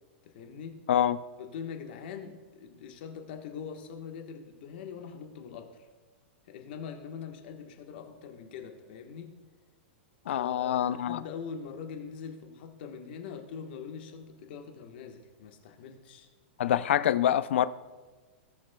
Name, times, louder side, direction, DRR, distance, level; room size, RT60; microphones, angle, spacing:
voice 1, 0.2-0.8 1.4-5.7 6.5-9.3 10.3-16.3, left 6 dB, 55° left, 1.3 m, -43 dB
voice 2, 10.3-11.2 16.6-17.7, left 10 dB, 80° left, 0.4 m, -25 dB
18.0 x 6.3 x 2.3 m
supercardioid pair, 160°, 6 cm